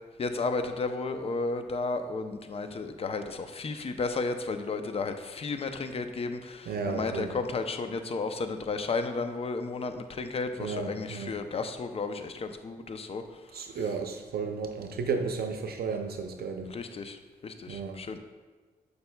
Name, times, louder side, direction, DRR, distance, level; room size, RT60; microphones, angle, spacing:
voice 1, 0.2-13.2 16.7-17.2 17.4-18.2, left 3 dB, 35° left, 8 dB, 0.5 m, -33 dB
voice 2, 6.7-7.4 10.6-11.4 13.5-16.7 17.7-18.0, right 5 dB, 70° right, 5 dB, 0.5 m, -33 dB
6.7 x 6.6 x 2.2 m, 1.3 s
cardioid pair, 85°, 17 cm